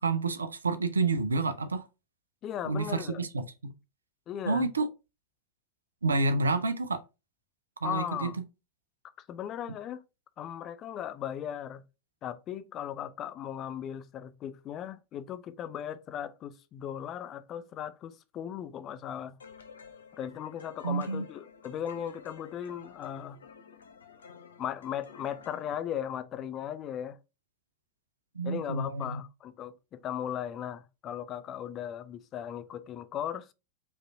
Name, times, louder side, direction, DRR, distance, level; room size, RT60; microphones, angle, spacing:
voice 1, 0.0-1.9 2.6-3.5 4.4-4.9 6.0-7.0 7.8-8.3 20.8-21.2 28.3-29.2, right 3 dB, 75° right, 0.5 m, -29 dB
voice 2, 2.4-3.2 4.3-4.7 7.8-8.4 9.3-10.0 10.4-11.8 12.2-19.3 20.1-23.4 24.6-27.2 28.4-33.5, left 10 dB, 30° left, 0.4 m, -37 dB
sound 1, 19.4-25.8, left 6 dB, 70° left, 0.6 m, -52 dB
5.0 x 3.1 x 2.6 m
figure-of-eight pair, 90°, 0 cm